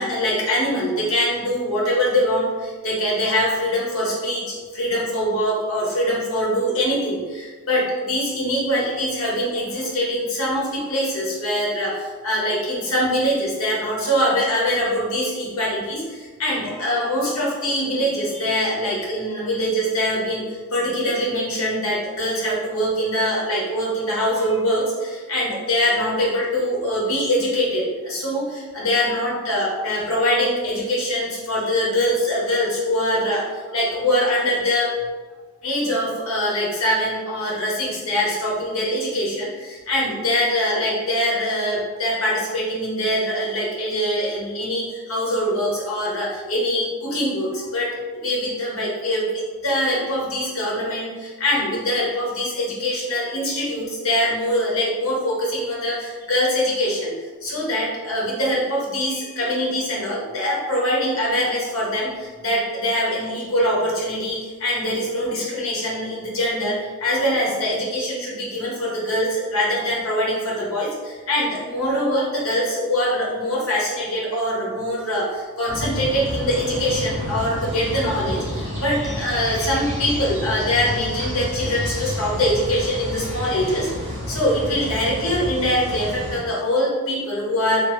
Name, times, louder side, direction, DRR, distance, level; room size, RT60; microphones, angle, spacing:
voice 1, 0.0-20.4 20.7-34.9 35.6-49.3 49.6-57.1 57.4-87.8, equal, 65° left, -4 dB, 1.0 m, -23 dB
sound 1, 75.7-86.4, left 1 dB, 35° right, 0.9 m, -30 dB
2.9 x 2.5 x 3.1 m, 1.4 s
head